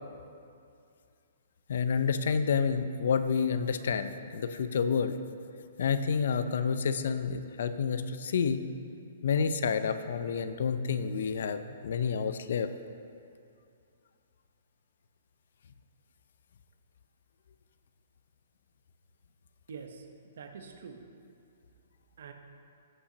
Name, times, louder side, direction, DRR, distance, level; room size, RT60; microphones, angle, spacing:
voice 1, 1.7-5.2 5.8-8.6 9.2-12.7, left 6 dB, 70° left, 11 dB, 0.5 m, -29 dB
voice 2, 19.7-21.0 22.2-22.3, right 5 dB, 70° right, 5 dB, 0.9 m, -45 dB
16.5 x 5.7 x 2.8 m, 2.5 s
hypercardioid pair, 140°, 0 cm